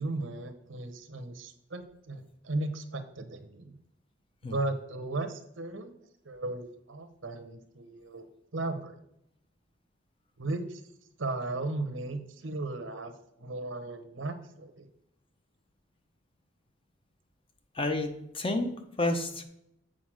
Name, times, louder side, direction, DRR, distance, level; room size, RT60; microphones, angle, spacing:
voice 1, 0.0-3.8 4.4-5.9 6.2-9.0 10.4-10.8 11.2-13.1 13.4-14.9, right 2 dB, 80° right, 9 dB, 0.9 m, -36 dB
voice 2, 17.7-19.4, left 2 dB, 30° left, 6 dB, 0.8 m, -30 dB
7.7 x 4.0 x 6.4 m, 0.78 s
head